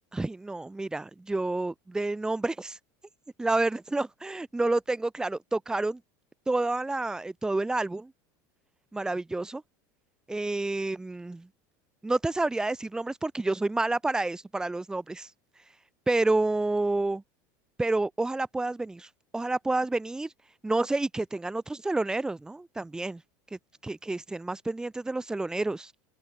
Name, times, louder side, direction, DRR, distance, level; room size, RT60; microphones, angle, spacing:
voice 1, 0.1-2.8 3.4-6.0 6.5-8.1 8.9-9.6 10.3-11.5 12.0-15.3 16.1-17.2 17.8-20.3 20.6-23.2 23.8-25.9, right 2 dB, 5° right, 3.3 m, -29 dB
supercardioid pair, 150°, 9 cm